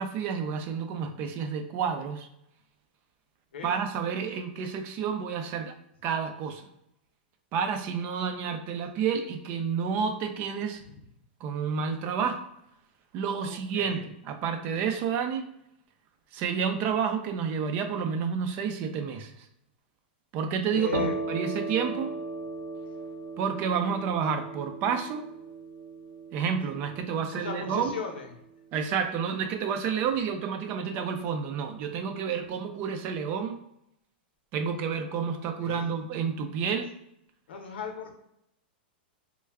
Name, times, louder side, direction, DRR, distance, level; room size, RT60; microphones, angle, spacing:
voice 1, 0.0-2.3 3.6-5.7 6.0-6.7 7.5-10.8 11.4-12.4 13.1-15.5 16.3-19.3 20.3-22.1 23.4-25.2 26.3-28.0 28.7-33.6 34.5-36.9, right 6 dB, 35° right, 7 dB, 0.4 m, -30 dB
voice 2, 13.4-14.0 20.7-21.2 27.3-28.3 35.6-35.9 37.5-38.1, left 6 dB, 85° left, 3 dB, 0.8 m, -37 dB
sound 1, 20.9-28.4, right 3 dB, 80° right, 0.9 m, -37 dB
3.2 x 2.2 x 3.4 m, 0.78 s
supercardioid pair, 145°, 6 cm